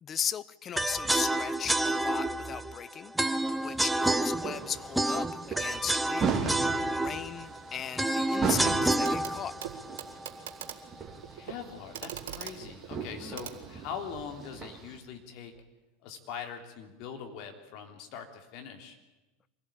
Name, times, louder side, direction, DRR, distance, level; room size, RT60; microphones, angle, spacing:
voice 1, 0.0-3.1 3.6-6.5 7.0-9.5 13.2-13.4, left 8 dB, 30° left, 17 dB, 0.8 m, -37 dB
sound 1, 0.8-10.8, right 1 dB, 5° right, 0.9 m, -29 dB
sound 2, 3.5-15.0, right 5 dB, 25° right, 3.3 m, -38 dB
Clock, 9.0-9.3 9.6-14.3 15.5-15.6, right 10 dB, 65° right, 2.2 m, -43 dB
voice 2, 11.3-15.5 16.0-19.0, left 7 dB, 55° left, 4 dB, 3.2 m, -42 dB
25.0 x 17.0 x 8.8 m, 1.1 s
figure-of-eight pair, 85°, 0 cm